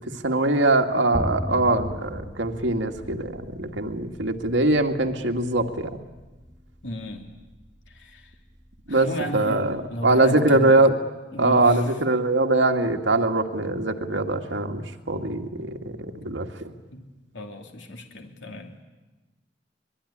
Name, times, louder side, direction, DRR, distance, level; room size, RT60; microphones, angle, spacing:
voice 1, 0.2-5.9 8.9-11.0 11.4-15.9 16.2-16.5, right 2 dB, 85° right, 4 dB, 2.0 m, -22 dB
sound 1, 1.1-10.2, equal, 10° right, 0.8 m, -37 dB
voice 2, 6.8-7.3 7.9-8.3 8.9-10.9 11.3-12.0 16.9-17.0 17.3-18.7, equal, 90° left, 3 dB, 2.6 m, -34 dB
24.0 x 22.0 x 10.0 m, 1.2 s
head